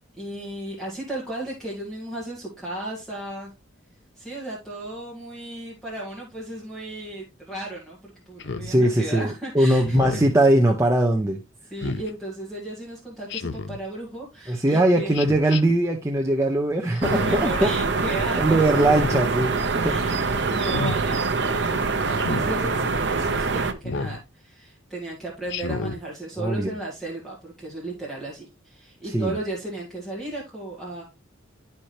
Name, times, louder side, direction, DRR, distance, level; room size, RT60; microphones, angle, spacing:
voice 1, 0.1-3.5 4.1-10.2 11.6-15.2 16.8-18.9 19.7-31.0, right 1 dB, ahead, 1.9 m, -35 dB
Speech synthesizer, 8.4-8.7 9.8-10.3 11.8-12.1 13.3-13.8 15.1-15.6 16.9-17.4 18.7-19.3 20.6-21.0 22.2-22.5 23.8-24.2 25.5-26.0, left 4 dB, 55° left, 0.6 m, -31 dB
voice 2, 8.6-11.4 14.5-17.7 18.4-19.9 26.4-26.7 29.1-29.3, right 1 dB, 15° right, 0.7 m, -21 dB
sound 1, 17.0-23.7, right 4 dB, 55° right, 0.8 m, -24 dB
11.5 x 4.3 x 3.2 m
head